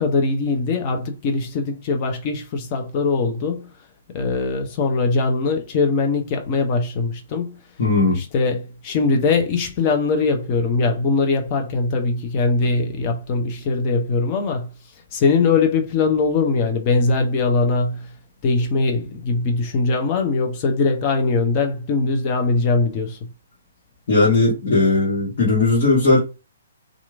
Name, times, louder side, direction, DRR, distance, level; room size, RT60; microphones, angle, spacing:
voice 1, 0.0-3.7 4.1-7.6 8.1-14.7 15.1-18.1 18.4-23.2, left 3 dB, 35° left, 0.7 m, -21 dB
voice 2, 7.8-8.2 24.1-26.2, left 3 dB, 50° left, 1.4 m, -17 dB
2.9 x 2.5 x 2.4 m
figure-of-eight pair, 125°, 0 cm